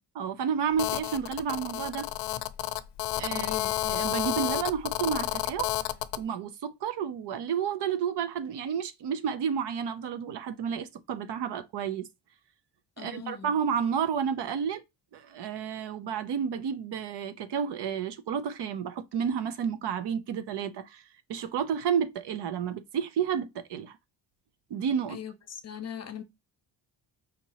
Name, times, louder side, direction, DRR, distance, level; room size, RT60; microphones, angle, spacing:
voice 1, 0.1-2.1 3.1-5.7 6.2-12.1 13.0-14.8 15.1-21.0 21.3-23.9 24.7-25.2, right 7 dB, 70° right, 0.7 m, -31 dB
Telephone, 0.8-6.2, left 15 dB, 75° left, 0.5 m, -31 dB
voice 2, 3.3-3.7 13.0-13.5 25.1-26.2, left 8 dB, 40° left, 0.7 m, -39 dB
5.1 x 2.8 x 2.8 m
cardioid pair, 155°, 42 cm